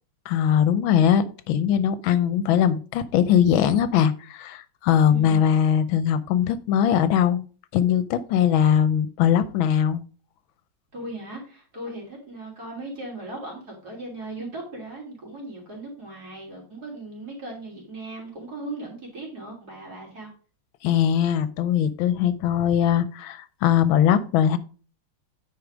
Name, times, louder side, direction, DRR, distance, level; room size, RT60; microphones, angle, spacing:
voice 1, 0.3-7.4 7.7-10.0 20.8-24.6, left 9 dB, 80° left, 14 dB, 1.4 m, -21 dB
voice 2, 5.0-5.4 10.9-20.3, right 2 dB, 50° right, -1 dB, 3.6 m, -38 dB
9.4 x 5.0 x 4.9 m, 0.37 s
omnidirectional pair, 2.2 m